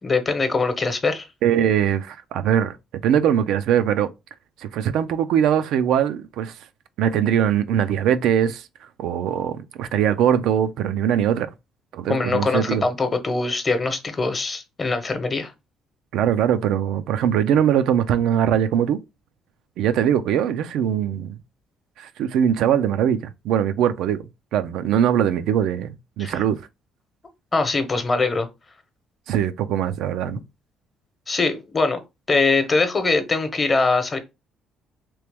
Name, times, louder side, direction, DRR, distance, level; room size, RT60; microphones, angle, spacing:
voice 1, 0.0-1.3 12.1-15.5 26.2-26.4 27.5-28.5 31.3-32.0 32.3-34.2, left 3 dB, 30° left, 0.9 m, -22 dB
voice 2, 1.4-2.8 3.0-4.1 4.6-6.5 7.0-8.7 9.0-11.5 11.9-12.9 16.1-19.0 19.8-21.4 22.0-26.6 29.3-30.4, right 9 dB, 75° right, 0.4 m, -21 dB
3.0 x 2.9 x 3.4 m
supercardioid pair, 75°, 0 cm